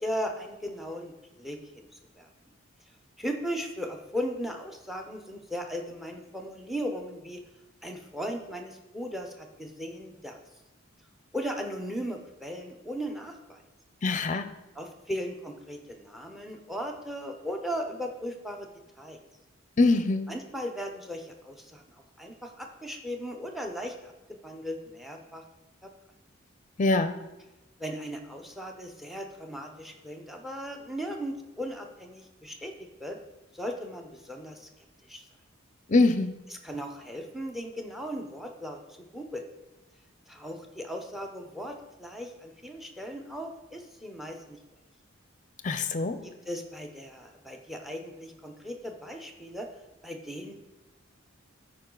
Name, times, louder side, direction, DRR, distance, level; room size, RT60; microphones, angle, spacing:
voice 1, 0.0-1.9 2.2-2.3 3.2-7.4 7.8-10.4 11.3-13.6 14.7-18.7 19.0-19.2 20.3-21.8 22.2-25.4 25.8-25.9 27.8-32.7 33.0-33.2 33.5-34.7 35.1-35.2 36.5-38.8 39.1-39.5 40.3-44.6 46.2-49.7 50.0-50.5, equal, ahead, 4 dB, 0.8 m, -37 dB
voice 2, 14.0-14.5 19.8-20.3 26.8-27.1 35.9-36.3 45.6-46.2, left 3 dB, 40° left, 10 dB, 0.6 m, -23 dB
13.5 x 4.9 x 3.9 m, 1.0 s
head